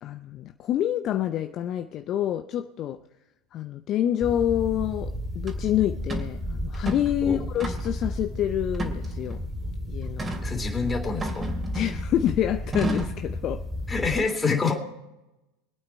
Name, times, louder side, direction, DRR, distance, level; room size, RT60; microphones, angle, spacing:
voice 1, 0.0-3.0 3.5-9.4 9.9-10.3 11.7-13.6, left 11 dB, 40° left, 8 dB, 0.6 m, -27 dB
sound 1, 4.2-14.2, equal, ahead, 3.0 m, -33 dB
sound 2, 5.5-5.6 6.1-6.3 6.7-7.1 7.6-8.0 8.7-9.4 10.2-10.5 11.2-12.1 12.7-13.2, right 2 dB, 25° right, 2.6 m, -32 dB
voice 2, 10.4-11.5 13.9-14.7, left 4 dB, 15° left, 3 dB, 3.0 m, -26 dB
24.5 x 8.9 x 4.5 m, 0.97 s
hypercardioid pair, 85°, 0 cm